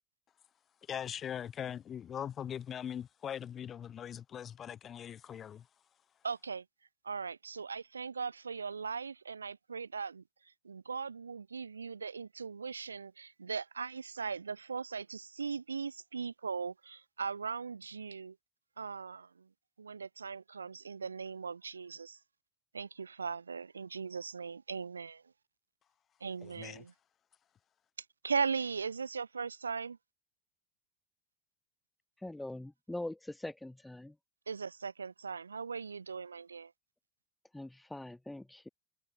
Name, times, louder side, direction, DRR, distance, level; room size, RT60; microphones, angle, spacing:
voice 1, 0.9-5.7 26.4-26.8, left 9 dB, 35° left, 1.0 m, -41 dB
voice 2, 6.2-6.6 7.0-10.2 10.6-18.4 18.8-19.5 19.8-22.2 22.7-25.2 26.2-26.9 28.2-30.0 34.5-36.7, right 5 dB, 80° right, 0.7 m, -39 dB
voice 3, 32.2-34.2 37.5-38.7, left 1 dB, 5° left, 0.9 m, -43 dB
figure-of-eight pair, 75°, 0 cm